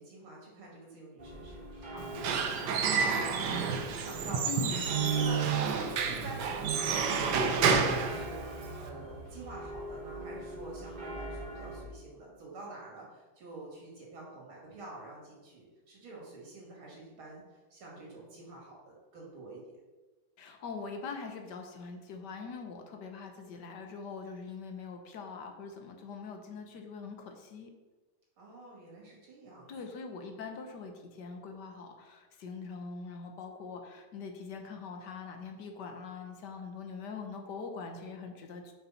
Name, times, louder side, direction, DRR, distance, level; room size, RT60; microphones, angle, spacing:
voice 1, 0.0-3.4 3.7-4.7 5.1-19.6 28.4-29.7, right 2 dB, 80° right, -3 dB, 3.2 m, -48 dB
sound 1, 1.2-11.8, right 1 dB, 30° right, 1.3 m, -44 dB
Squeak / Wood, 2.0-8.9, right 5 dB, 65° right, 1.2 m, -30 dB
voice 2, 4.4-5.4 20.4-27.7 29.7-38.7, left 5 dB, 60° left, 4 dB, 1.4 m, -43 dB
6.0 x 5.4 x 5.7 m, 1.2 s
omnidirectional pair, 2.3 m